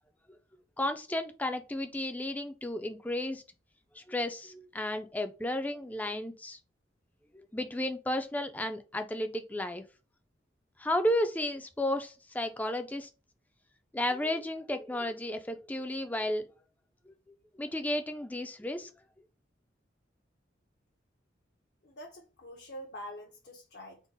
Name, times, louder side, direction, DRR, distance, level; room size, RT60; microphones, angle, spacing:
voice 1, 0.8-3.4 3.9-6.6 7.5-9.8 10.8-13.1 13.9-16.5 17.1-17.2 17.6-18.9, left 1 dB, 10° left, 0.4 m, -33 dB
voice 2, 21.8-24.0, equal, 60° left, 0.7 m, -45 dB
3.7 x 2.0 x 3.9 m
head